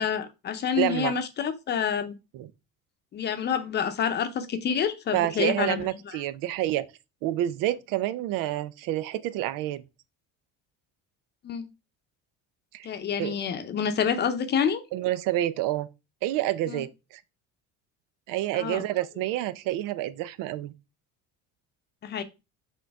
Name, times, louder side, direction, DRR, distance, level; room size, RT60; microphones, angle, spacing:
voice 1, 0.0-2.1 3.1-5.8 11.4-11.7 12.8-14.8 16.7-16.8 18.5-18.8 22.0-22.2, left 7 dB, 30° left, 0.7 m, -28 dB
voice 2, 0.8-1.1 2.3-2.5 5.1-6.9 7.2-9.8 12.7-12.9 13.2-13.4 14.9-15.9 16.2-17.2 18.3-20.7, right 14 dB, 75° right, 0.7 m, -28 dB
6.4 x 3.9 x 4.7 m
cardioid pair, 165°, 32 cm